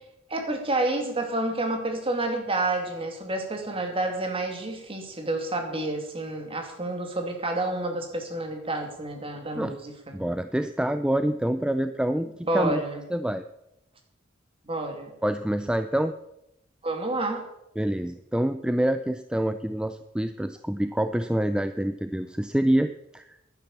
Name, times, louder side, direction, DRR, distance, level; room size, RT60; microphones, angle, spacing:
voice 1, 0.3-10.2 12.4-13.0 14.7-15.1 16.8-17.4, right 2 dB, 30° right, 4 dB, 2.6 m, -29 dB
voice 2, 10.1-12.3 12.5-12.8 13.1-13.4 15.2-16.1 17.8-23.6, right 1 dB, 5° right, 10 dB, 0.4 m, -26 dB
12.0 x 10.0 x 7.2 m, 0.84 s
head